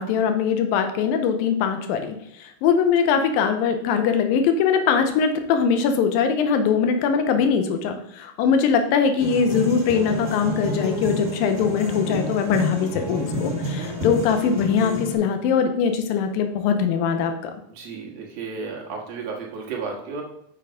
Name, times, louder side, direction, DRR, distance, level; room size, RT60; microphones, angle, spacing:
voice 1, 0.0-2.2 2.4-17.5, left 6 dB, 85° left, 7 dB, 2.5 m, -21 dB
sound 1, 9.2-15.1, left 1 dB, 30° right, 2.6 m, -29 dB
voice 2, 17.7-20.2, right 5 dB, 55° right, -1 dB, 2.3 m, -33 dB
6.7 x 6.4 x 5.1 m, 0.75 s
omnidirectional pair, 4.1 m